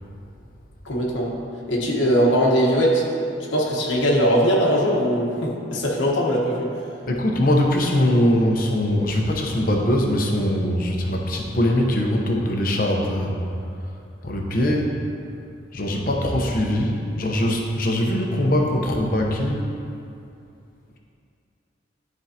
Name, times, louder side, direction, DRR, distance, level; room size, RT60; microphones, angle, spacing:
voice 1, 0.8-1.3 1.7-3.1 3.5-6.7, equal, 80° left, -3 dB, 1.2 m, -20 dB
voice 2, 7.1-13.4 14.2-15.0 15.7-19.7, left 1 dB, 45° left, 0 dB, 0.9 m, -22 dB
12.5 x 4.6 x 2.8 m, 2.5 s
head